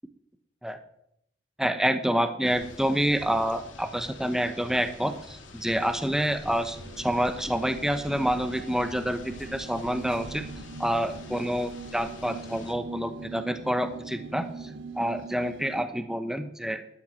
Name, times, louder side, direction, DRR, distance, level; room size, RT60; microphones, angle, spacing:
voice 1, 1.6-10.5 10.8-16.8, equal, 5° right, 8 dB, 1.0 m, -28 dB
sound 1, 2.4-12.7, left 2 dB, 80° left, 2.7 m, -46 dB
sound 2, 6.7-15.8, right 4 dB, 90° right, 1.1 m, -42 dB
12.0 x 9.3 x 9.5 m, 0.75 s
head